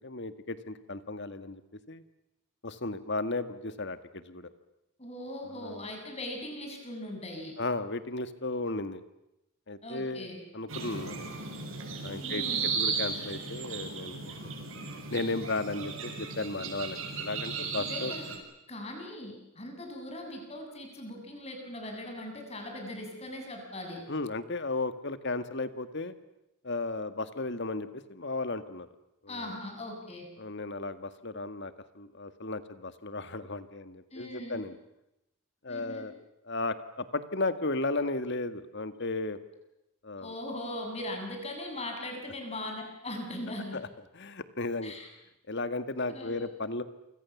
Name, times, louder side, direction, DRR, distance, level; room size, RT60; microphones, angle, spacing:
voice 1, 0.0-1.6 1.9-2.0 2.6-4.5 5.5-5.9 7.6-9.0 9.7-11.5 12.0-14.4 15.1-18.1 24.1-26.2 26.6-28.9 29.2-29.6 30.4-34.8 35.6-36.1 36.5-39.4 40.0-40.3 43.7-43.9 44.1-44.9 45.5-46.8, left 2 dB, 55° left, 11 dB, 1.8 m, -35 dB
voice 2, 5.0-7.6 9.8-10.4 12.2-12.7 17.8-18.2 18.7-24.0 29.3-30.3 34.1-34.7 35.7-36.1 40.2-43.8 44.8-45.1 46.1-46.4, left 1 dB, 30° left, 3 dB, 7.3 m, -40 dB
sound 1, 10.7-18.4, right 5 dB, 70° right, 6.9 m, -35 dB
28.5 x 25.5 x 7.2 m, 0.89 s
head